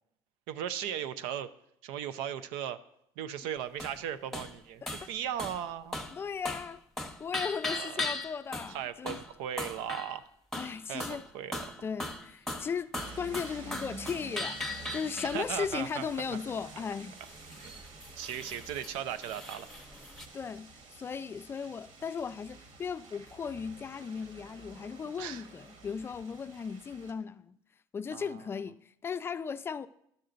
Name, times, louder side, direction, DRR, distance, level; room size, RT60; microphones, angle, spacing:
voice 1, 0.5-1.5 1.8-2.8 3.2-6.0 7.7-8.1 8.7-10.3 10.9-11.6 15.3-16.4 17.6-17.7 18.2-19.7 25.2-25.4 28.1-28.4, right 10 dB, 90° right, 0.5 m, -37 dB
sound 1, 3.8-4.0 4.3-4.5 4.9-5.1 5.4-5.6 5.9-6.2 6.4-6.7 7.0-8.8 9.1-9.3 9.6-10.2 10.5-11.3 11.5-15.7 17.2-20.3, left 2 dB, 5° left, 0.9 m, -38 dB
voice 2, 6.1-6.8 7.2-9.2 10.6-11.2 11.8-14.6 14.9-17.2 20.3-27.6 27.9-29.9, left 6 dB, 25° left, 0.4 m, -37 dB
sound 2, 12.9-27.1, right 3 dB, 70° right, 1.6 m, -50 dB
11.5 x 6.6 x 3.8 m
cardioid pair, 110°, 9 cm